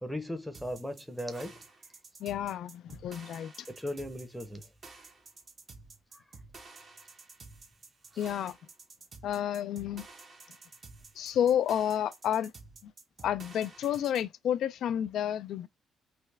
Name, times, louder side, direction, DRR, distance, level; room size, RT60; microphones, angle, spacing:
voice 1, 0.0-1.6 3.7-4.7 6.1-6.2, equal, ahead, 0.7 m, -37 dB
sound 1, 0.5-14.3, right 3 dB, 45° right, 0.8 m, -51 dB
voice 2, 2.2-3.7 8.2-8.6 9.2-10.1 11.2-12.5 12.8-12.9 13.2-15.7, left 10 dB, 75° left, 0.3 m, -30 dB
3.4 x 2.1 x 3.3 m
cardioid pair, 90°, 0 cm